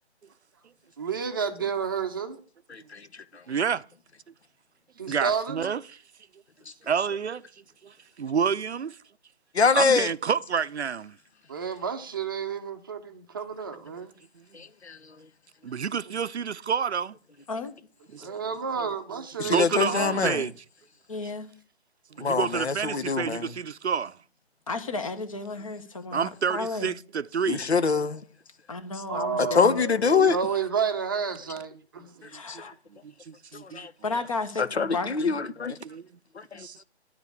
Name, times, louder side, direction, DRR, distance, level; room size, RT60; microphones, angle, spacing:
voice 1, 1.0-2.4 5.0-5.7 11.5-14.1 18.2-20.3 29.1-32.1, right 6 dB, 20° right, 0.7 m, -31 dB
voice 2, 2.7-3.0 9.5-10.1 14.5-15.2 18.2-18.3 19.4-20.5 22.2-23.5 27.5-28.2 29.4-30.4 32.5-32.7 33.6-33.9 34.6-35.8 36.3-36.7, left 5 dB, 70° left, 1.1 m, -25 dB
voice 3, 3.5-3.8 5.1-5.8 6.9-7.4 7.8-9.0 9.7-11.2 14.4-14.5 15.6-17.2 18.1-18.3 19.4-20.5 22.2-24.2 26.1-27.7 32.3-32.4 33.0-33.9 35.8-36.1 36.6-36.8, right 7 dB, 70° right, 0.6 m, -29 dB
voice 4, 21.1-21.5 24.7-26.9 28.7-29.8 32.3-32.7 33.5-35.4, left 3 dB, 30° left, 1.0 m, -33 dB
10.0 x 5.1 x 8.1 m
figure-of-eight pair, 155°, 34 cm